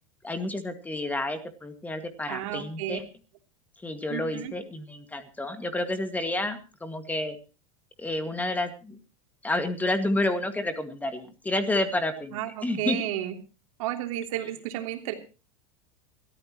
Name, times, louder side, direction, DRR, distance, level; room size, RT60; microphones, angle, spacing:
voice 1, 0.2-3.0 3.8-7.4 8.0-9.0 9.4-13.0, left 2 dB, 10° left, 8 dB, 2.0 m, -30 dB
voice 2, 2.3-3.0 4.1-4.5 12.3-13.4 13.8-15.1, right 13 dB, 75° right, 4 dB, 3.2 m, -32 dB
23.5 x 14.0 x 3.0 m, 0.33 s
supercardioid pair, 140°, 18 cm